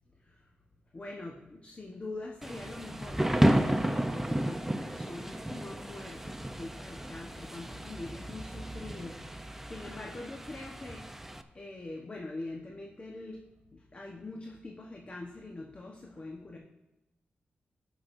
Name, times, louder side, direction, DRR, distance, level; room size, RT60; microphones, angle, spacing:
voice 1, 0.9-11.0 11.5-13.4 13.9-16.6, left 2 dB, 35° left, 0 dB, 1.2 m, -43 dB
Thunder / Rain, 2.4-11.4, right 1 dB, 10° right, 0.6 m, -32 dB
16.5 x 6.3 x 2.7 m, 0.98 s
cardioid pair, 70°, 4 cm